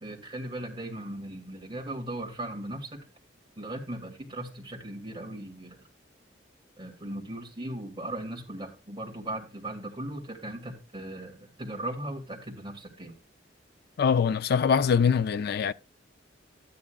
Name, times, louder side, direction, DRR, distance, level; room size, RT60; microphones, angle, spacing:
voice 1, 0.0-3.0 3.6-5.8 6.8-13.2, right 1 dB, 30° right, 2.4 m, -38 dB
voice 2, 14.0-15.7, left 6 dB, 55° left, 0.4 m, -23 dB
12.5 x 9.8 x 2.3 m
head